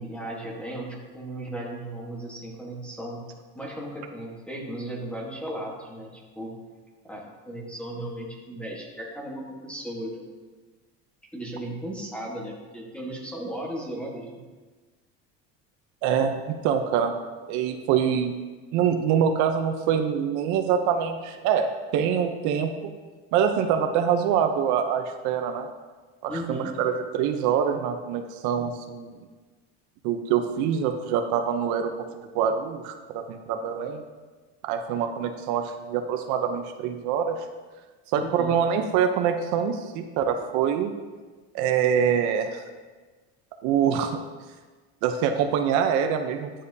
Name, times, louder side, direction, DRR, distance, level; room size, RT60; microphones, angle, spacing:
voice 1, 0.0-3.2 3.5-6.6 7.0-10.2 11.3-14.4 26.3-26.7 38.1-38.6, right 1 dB, 5° left, -2 dB, 1.3 m, -36 dB
voice 2, 16.0-17.1 17.5-18.3 18.7-22.9 23.3-25.7 26.2-29.1 30.0-31.9 32.3-34.0 34.6-37.5 38.1-40.9 41.5-42.6 43.6-44.2 45.0-46.7, right 8 dB, 65° right, 6 dB, 0.7 m, -25 dB
10.0 x 7.4 x 2.7 m, 1.3 s
cardioid pair, 160°, 32 cm